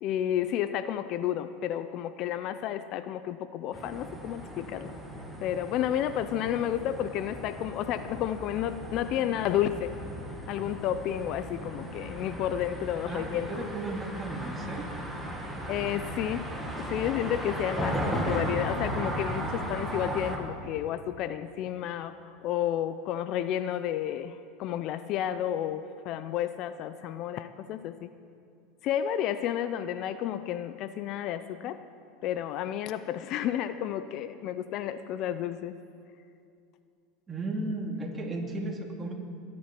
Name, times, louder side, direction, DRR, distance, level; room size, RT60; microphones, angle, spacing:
voice 1, 0.0-4.9 5.4-9.9 10.5-13.7 15.7-16.5 16.8-22.2 22.4-28.1 28.8-31.8 32.2-35.8, left 11 dB, 50° left, 12 dB, 0.6 m, -31 dB
sound 1, 3.7-20.4, equal, ahead, 2.2 m, -36 dB
voice 2, 13.1-14.9 37.3-39.1, right 2 dB, 20° right, 1 dB, 2.4 m, -35 dB
21.0 x 11.0 x 6.0 m, 2.5 s
supercardioid pair, 115°, 0 cm